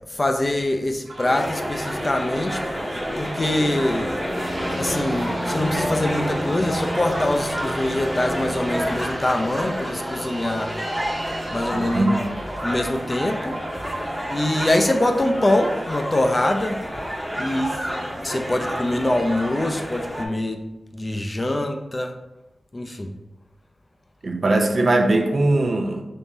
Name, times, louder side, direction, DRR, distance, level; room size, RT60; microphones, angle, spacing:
voice 1, 0.1-2.6 3.2-4.1 4.8-10.7 11.5-12.1 12.6-13.6 14.3-16.8 17.4-17.8 18.2-20.6 20.9-22.1 22.7-23.1, left 1 dB, 35° left, 5 dB, 0.5 m, -24 dB
sound 1, 1.1-17.0 17.3-18.2 18.5-18.8, right 1 dB, 85° right, 0.9 m, -37 dB
sound 2, 1.3-20.3, equal, ahead, 0.8 m, -29 dB
Fixed-wing aircraft airplane, 4.3-12.1, right 1 dB, 35° right, 1.3 m, -39 dB
voice 2, 11.7-12.2 24.2-26.0, right 2 dB, 60° right, 4 dB, 0.5 m, -20 dB
3.7 x 2.9 x 3.9 m, 0.97 s
cardioid pair, 55°, 0 cm